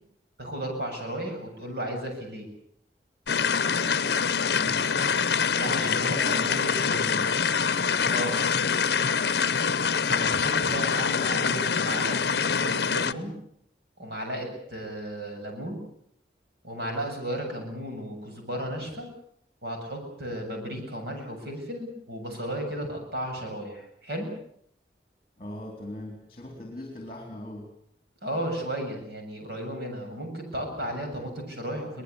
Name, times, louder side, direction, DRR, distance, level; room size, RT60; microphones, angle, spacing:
voice 1, 0.4-2.5 5.5-7.0 8.1-8.4 10.0-13.3 14.0-15.8 16.6-19.1 19.6-24.3 28.2-32.0, equal, 60° right, 3 dB, 7.6 m, -34 dB
sound 1, 3.3-13.1, left 6 dB, 60° left, 0.8 m, -25 dB
voice 2, 4.5-5.0 5.8-7.3 25.4-27.7, left 1 dB, 30° left, 2 dB, 4.1 m, -40 dB
23.0 x 20.0 x 8.3 m, 0.71 s
head